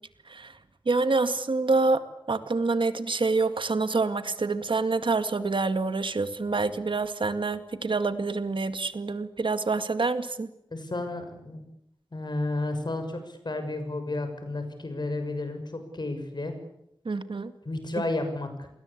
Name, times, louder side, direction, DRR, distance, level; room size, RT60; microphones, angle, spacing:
voice 1, 0.9-2.0 2.3-10.5 17.1-17.5, right 3 dB, 85° right, 10 dB, 2.0 m, -27 dB
voice 2, 10.7-11.6 12.1-16.6 17.6-18.7, left 2 dB, 60° left, 7 dB, 6.5 m, -32 dB
29.0 x 21.5 x 8.5 m, 0.78 s
wide cardioid pair, 70°, 8 cm